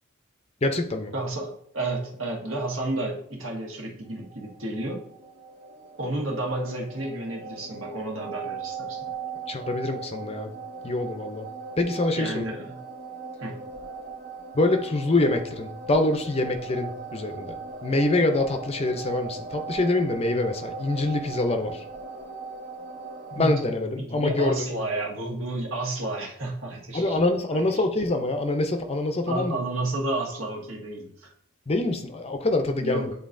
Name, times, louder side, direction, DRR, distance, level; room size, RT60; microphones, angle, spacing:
voice 1, 0.6-1.1 9.5-10.5 10.8-11.5 11.8-12.4 14.5-17.5 17.8-21.8 23.3-24.7 26.9-29.6 31.7-33.1, left 2 dB, 30° left, 6 dB, 0.6 m, -25 dB
voice 2, 1.1-5.1 6.0-9.1 12.1-12.8 13.4-13.6 23.4-23.5 23.9-27.2 27.5-27.7 29.3-31.3 32.8-33.1, right 2 dB, 70° right, -1 dB, 1.5 m, -31 dB
sound 1, 4.1-23.7, right 5 dB, 45° right, 0.8 m, -39 dB
9.5 x 3.9 x 2.6 m, 0.67 s
head